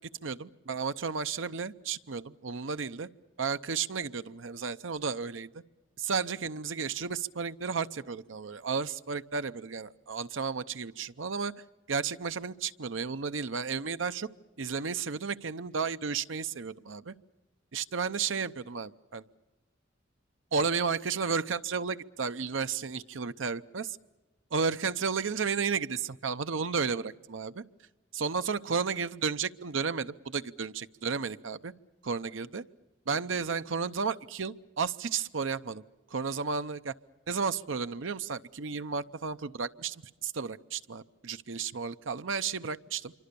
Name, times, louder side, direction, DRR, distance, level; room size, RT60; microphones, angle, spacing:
voice 1, 0.2-3.1 3.4-5.6 6.0-11.5 11.9-14.3 14.6-17.1 17.7-19.2 20.5-24.0 24.5-27.6 28.1-31.7 32.0-32.6 33.1-35.8 36.1-36.9 37.3-43.1, right 5 dB, 85° right, 12 dB, 0.7 m, -33 dB
26.5 x 25.0 x 6.9 m, 1.1 s
head